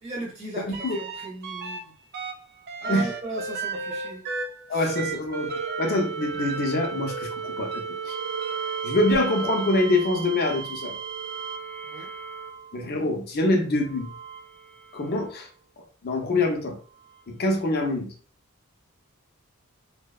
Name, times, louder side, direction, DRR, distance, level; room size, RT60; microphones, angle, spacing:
voice 1, 0.0-1.9 2.8-4.2 4.7-4.9 11.8-12.1, right 1 dB, 30° right, -3 dB, 0.9 m, -37 dB
sound 1, 0.7-1.8 2.1-12.9 13.8-15.3 17.0-17.1, right 5 dB, 50° right, 0.4 m, -34 dB
voice 2, 4.7-5.5 5.8-8.1 8.8-11.0 12.7-14.1 14.9-15.5 16.0-16.8 17.3-18.1, left 2 dB, 50° left, 3 dB, 0.5 m, -25 dB
2.6 x 2.1 x 2.3 m, 0.40 s
head